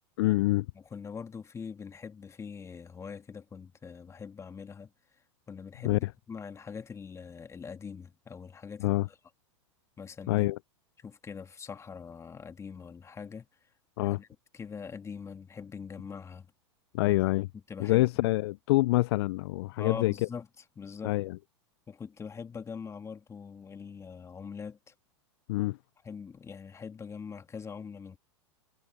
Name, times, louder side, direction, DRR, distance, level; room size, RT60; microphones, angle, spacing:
voice 1, 0.2-0.7 5.8-6.0 8.8-9.1 10.3-10.6 14.0-14.2 16.9-17.5 17.8-20.1 21.0-21.4 25.5-25.8, left 19 dB, 60° left, 0.4 m, -26 dB
voice 2, 0.8-4.9 5.5-9.0 10.0-10.5 11.0-13.5 14.0-14.3 14.5-16.5 17.0-17.2 17.7-18.1 19.8-20.5 20.8-21.2 21.9-24.9 26.0-28.2, left 6 dB, 20° left, 2.1 m, -43 dB
hypercardioid pair, 105°, 15 cm